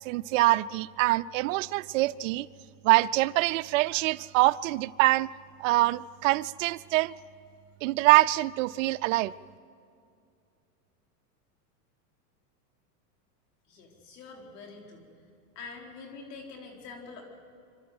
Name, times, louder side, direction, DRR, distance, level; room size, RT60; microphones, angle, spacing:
voice 1, 0.0-2.5 2.8-5.3 5.6-7.1 7.8-9.3, right 19 dB, 55° right, 17 dB, 0.5 m, -24 dB
voice 2, 13.6-15.0 15.5-17.2, left 4 dB, 85° left, 1 dB, 4.6 m, -45 dB
27.0 x 13.0 x 7.8 m, 2.4 s
supercardioid pair, 140°, 47 cm